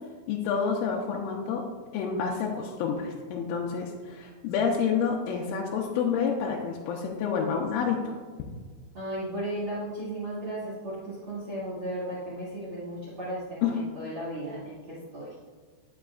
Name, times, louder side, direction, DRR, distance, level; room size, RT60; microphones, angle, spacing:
voice 1, 0.3-1.6 1.9-8.2 13.6-13.8, left 6 dB, 85° left, -1 dB, 3.1 m, -28 dB
voice 2, 8.9-15.3, right 1 dB, 85° right, -9 dB, 1.2 m, -35 dB
9.2 x 7.7 x 2.4 m, 1.5 s
omnidirectional pair, 5.7 m